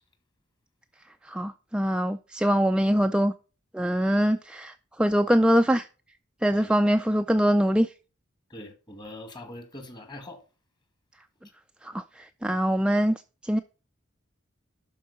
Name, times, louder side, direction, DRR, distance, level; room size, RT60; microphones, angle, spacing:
voice 1, 1.3-3.3 3.7-4.7 5.0-5.8 6.4-7.9 11.9-12.0 12.4-13.1 13.5-13.6, equal, 5° right, 0.4 m, -23 dB
voice 2, 8.5-10.4, left 1 dB, 20° left, 2.0 m, -42 dB
12.0 x 4.7 x 6.5 m
head